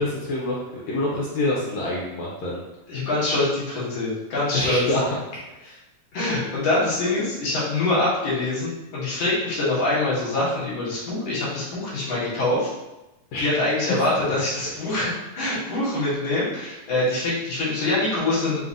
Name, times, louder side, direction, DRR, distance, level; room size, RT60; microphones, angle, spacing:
voice 1, 0.0-2.6 4.5-5.1 5.6-5.8 13.3-13.5, left 2 dB, 90° left, -5 dB, 1.5 m, -26 dB
voice 2, 2.9-4.8 6.1-12.7 13.4-18.7, left 2 dB, 55° left, -9 dB, 2.3 m, -24 dB
5.4 x 2.9 x 2.5 m, 1.0 s
omnidirectional pair, 3.9 m